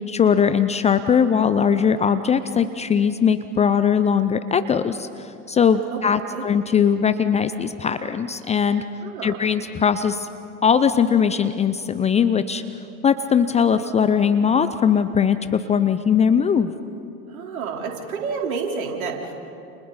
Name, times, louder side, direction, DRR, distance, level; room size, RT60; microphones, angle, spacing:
voice 1, 0.1-8.8 9.2-10.3 10.6-12.6 13.0-16.7, left 7 dB, 15° left, 12 dB, 0.6 m, -20 dB
voice 2, 9.0-9.4 17.3-19.3, right 5 dB, 70° right, 0 dB, 4.1 m, -29 dB
30.0 x 29.5 x 4.2 m, 2.6 s
figure-of-eight pair, 90°, 44 cm